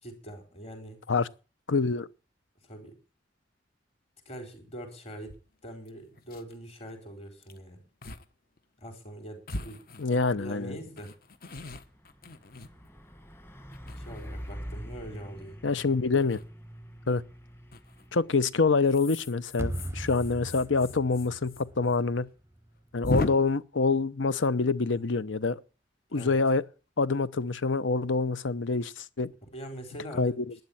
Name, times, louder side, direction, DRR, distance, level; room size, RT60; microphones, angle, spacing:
voice 1, 0.0-1.0 2.6-3.0 4.3-5.3 5.6-7.8 8.8-9.8 10.4-11.1 14.0-15.6 26.1-26.3 29.5-30.4, right 1 dB, 35° left, 4.0 m, -43 dB
voice 2, 1.7-2.1 10.0-10.8 15.6-16.4 17.1-17.2 18.1-22.3 22.9-25.6 26.1-26.6 27.0-29.3 30.2-30.4, left 4 dB, 85° left, 0.8 m, -26 dB
sound 1, 5.3-5.4 5.9-6.0 6.2-6.5 7.4-7.6 8.0-8.2 8.6-8.7 9.5-10.4 11.0-13.2 13.7-14.5 16.2-16.4 17.7-18.1 18.8-21.6 21.9-22.0 22.3-22.4 23.0-23.3, left 2 dB, 50° left, 1.2 m, -36 dB
Truck, 10.8-23.4, equal, 15° left, 1.5 m, -47 dB
sound 2, 19.6-22.7, right 1 dB, 15° right, 0.6 m, -38 dB
12.0 x 9.4 x 8.6 m
head